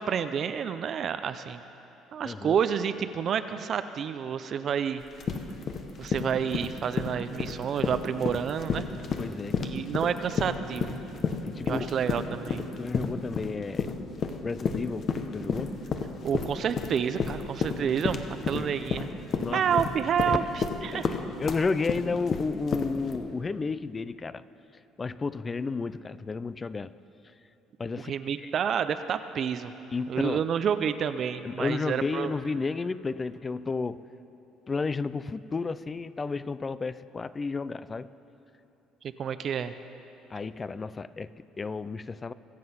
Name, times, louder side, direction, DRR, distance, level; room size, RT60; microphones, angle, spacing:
voice 1, 0.0-1.6 2.1-5.0 6.0-8.9 9.6-11.0 11.6-12.6 16.2-19.1 19.5-20.4 20.8-21.1 28.0-29.7 30.1-32.3 39.2-39.7, right 8 dB, 45° right, 11 dB, 0.4 m, -29 dB
voice 2, 2.2-2.6 9.2-9.7 11.4-11.9 12.8-13.9 14.4-15.7 18.5-18.7 19.4-19.8 20.3-20.5 20.9-24.4 25.0-26.9 27.8-28.1 28.4-28.5 29.9-30.4 31.4-34.0 34.7-38.1 40.3-42.3, left 4 dB, 20° left, 16 dB, 0.3 m, -32 dB
sound 1, 5.0-23.2, left 5 dB, 40° left, 0.9 m, -31 dB
23.0 x 7.6 x 5.7 m, 2.9 s
cardioid pair, 130°, 0 cm